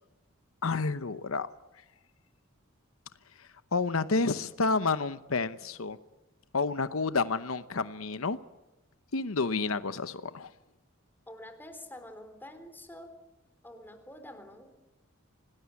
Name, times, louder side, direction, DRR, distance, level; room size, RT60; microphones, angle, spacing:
voice 1, 0.6-1.5 3.7-6.0 6.5-8.4 9.1-10.5, left 4 dB, 90° left, 0.9 m, -29 dB
voice 2, 11.3-13.1 13.6-14.7, left 1 dB, 10° left, 3.8 m, -47 dB
26.5 x 19.0 x 9.7 m
head